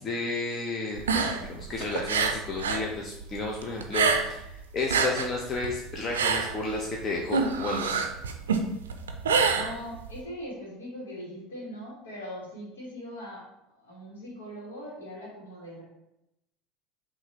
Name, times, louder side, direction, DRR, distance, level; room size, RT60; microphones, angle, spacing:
voice 1, 0.0-8.1, left 2 dB, 35° left, 0 dB, 0.6 m, -32 dB
sound 1, 0.9-2.9 3.2-4.5 4.8-10.2, right 5 dB, 80° right, 0.4 m, -26 dB
voice 2, 9.5-15.8, equal, 80° left, -5 dB, 1.4 m, -41 dB
5.7 x 2.6 x 2.8 m, 0.87 s
hypercardioid pair, 75°, 0 cm